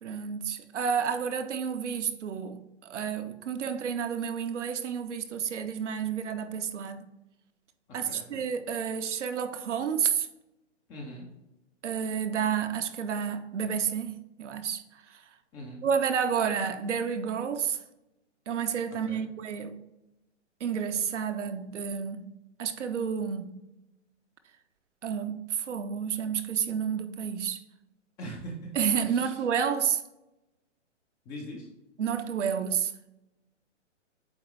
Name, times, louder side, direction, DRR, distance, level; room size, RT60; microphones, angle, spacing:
voice 1, 0.0-7.1 7.9-10.3 11.8-14.8 15.1-15.2 15.8-17.8 18.5-19.8 20.6-22.3 22.6-23.6 25.0-27.6 28.8-30.0 32.0-32.9, right 7 dB, 75° right, 0.9 m, -30 dB
voice 2, 7.9-8.4 10.9-11.3 15.5-15.8 19.1-19.2 28.2-28.7 29.0-29.4 31.3-31.7, equal, 10° left, 0.4 m, -41 dB
8.5 x 3.6 x 3.2 m
hypercardioid pair, 140°, 36 cm